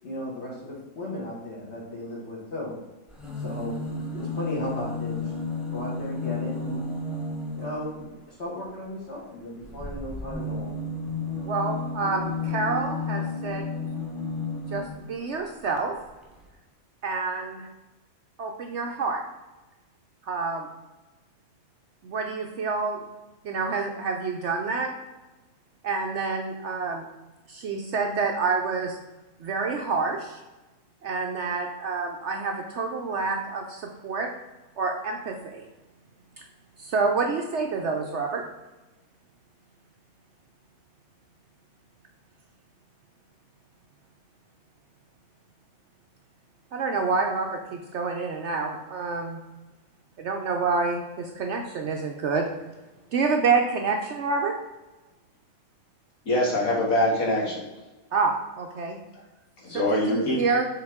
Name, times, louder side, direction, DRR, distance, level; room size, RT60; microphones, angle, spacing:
voice 1, 0.0-2.8 3.4-5.3 5.7-6.8 7.5-10.8, left 1 dB, 50° left, -4 dB, 2.2 m, -35 dB
sound 1, 3.1-8.0 9.6-15.1 16.0-16.1 16.3-16.4, left 3 dB, ahead, 0.6 m, -32 dB
voice 2, 11.5-13.6 14.7-16.0 17.0-17.7 18.4-19.2 20.3-20.7 22.0-23.0 23.4-25.0 25.8-27.0 27.5-29.0 29.4-30.4 31.0-34.3 34.8-35.6 36.8-38.4 46.7-49.4 50.2-52.5 53.1-54.6 58.1-59.0 59.7-60.7, right 4 dB, 65° right, 3 dB, 0.8 m, -28 dB
voice 3, 56.3-57.6 59.6-60.4, left 1 dB, 65° left, -4 dB, 1.9 m, -24 dB
6.8 x 3.9 x 3.6 m, 1.1 s
omnidirectional pair, 1.6 m